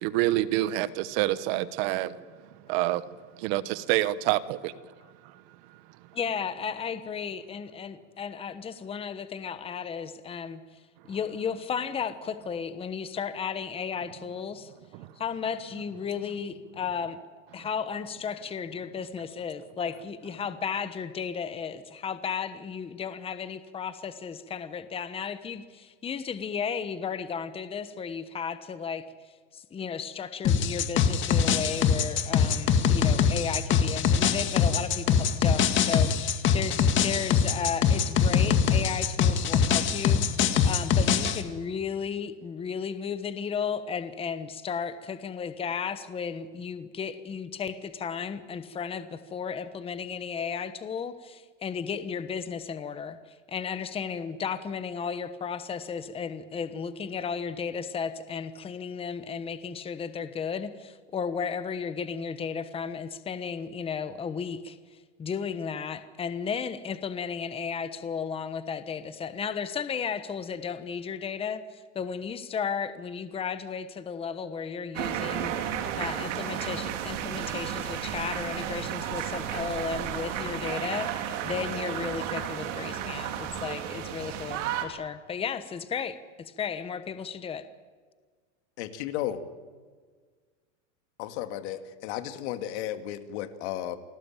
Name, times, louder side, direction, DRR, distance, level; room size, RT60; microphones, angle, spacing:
voice 1, 0.0-2.2 2.7-3.0 3.4-4.7 15.0-15.1, right 16 dB, 50° right, 15 dB, 1.2 m, -27 dB
voice 2, 6.1-10.6 11.1-14.7 15.2-17.2 17.5-29.0 29.5-53.2 53.5-64.8 65.2-87.6, left 6 dB, 15° left, 12 dB, 1.1 m, -34 dB
sound 1, 30.4-41.4, left 7 dB, 30° left, 2.1 m, -23 dB
sound 2, 74.9-84.8, right 9 dB, 75° right, 3.9 m, -33 dB
voice 3, 88.8-89.4 91.2-94.0, left 12 dB, 60° left, 9 dB, 2.4 m, -34 dB
29.0 x 19.5 x 9.0 m, 1.5 s
supercardioid pair, 150°, 37 cm